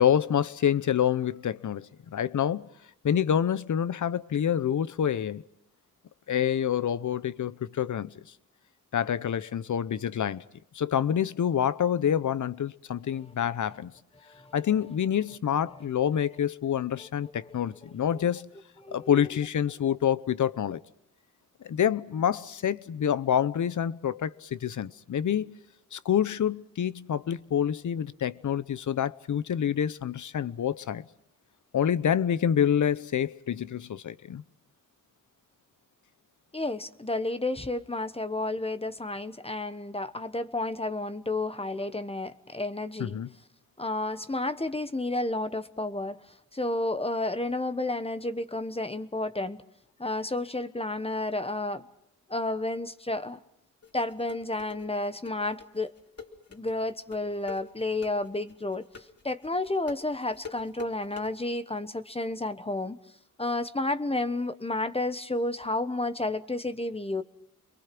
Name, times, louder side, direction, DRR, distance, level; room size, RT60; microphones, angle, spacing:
voice 1, 0.0-2.7 3.0-5.4 6.3-8.1 8.9-10.4 10.7-13.9 14.5-18.5 18.9-20.8 21.6-25.6 25.9-31.0 31.7-34.4 43.0-43.3, left 9 dB, 65° left, 0.9 m, -27 dB
voice 2, 18.8-19.2 36.5-43.2 43.8-46.2 46.5-49.6 50.0-51.8 52.3-53.4 53.9-55.9 56.5-58.8 59.2-63.0 63.4-67.2, left 2 dB, 15° left, 1.2 m, -31 dB
sound 1, 53.8-61.3, left 5 dB, 50° left, 3.2 m, -44 dB
30.0 x 22.5 x 6.0 m
cardioid pair, 75°, 33 cm